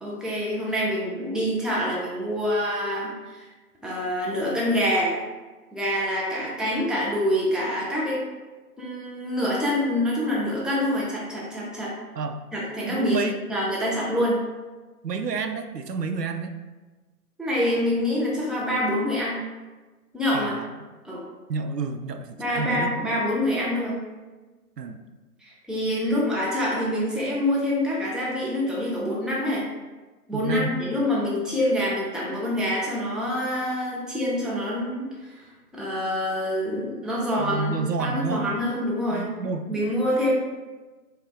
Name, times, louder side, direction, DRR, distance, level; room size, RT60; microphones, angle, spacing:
voice 1, 0.0-3.5 3.8-5.2 5.7-8.2 8.8-12.0 12.5-13.2 13.5-14.4 17.4-19.5 20.1-20.6 21.0-21.2 22.4-24.0 25.4-29.6 30.3-35.4 35.7-39.3 39.7-40.3, left 1 dB, ahead, -6 dB, 0.4 m, -26 dB
voice 2, 12.9-13.4 15.0-16.5 20.3-20.7 21.5-22.9 24.8-25.0 30.3-30.7 37.4-38.5 39.1-39.7, right 4 dB, 80° right, 7 dB, 0.5 m, -29 dB
4.7 x 2.1 x 3.2 m, 1.3 s
figure-of-eight pair, 175°, 48 cm